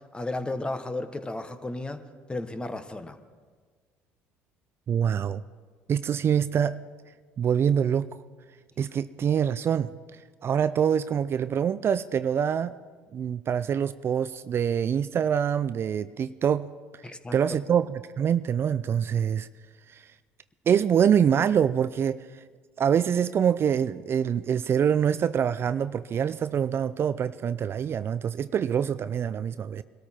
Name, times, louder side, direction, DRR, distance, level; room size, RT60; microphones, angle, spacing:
voice 1, 0.0-2.0 2.3-3.2 17.0-17.3, left 2 dB, 15° left, 10 dB, 1.2 m, -33 dB
voice 2, 4.9-5.4 5.9-6.8 7.4-8.1 8.8-9.9 10.4-12.7 13.1-16.7 17.3-19.5 19.9-20.0 20.7-22.2 22.8-29.8, right 8 dB, 45° right, 14 dB, 0.4 m, -25 dB
22.0 x 13.0 x 4.4 m, 1.5 s
hypercardioid pair, 70°, 6 cm